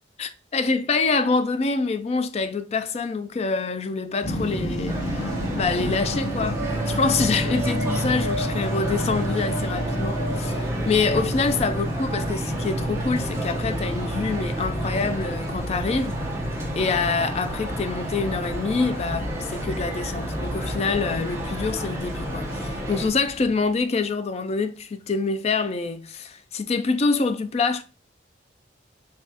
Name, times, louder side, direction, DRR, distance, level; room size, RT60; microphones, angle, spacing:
voice 1, 0.2-6.6 6.9-16.2 16.8-27.8, left 4 dB, 35° left, 0.4 m, -26 dB
sound 1, 4.2-23.7, equal, 60° left, 1.4 m, -30 dB
sound 2, 4.7-11.5, right 1 dB, 65° right, 0.7 m, -36 dB
Male speech man speaking, 4.9-23.1, right 1 dB, 15° right, 0.8 m, -35 dB
6.3 x 2.3 x 2.8 m
head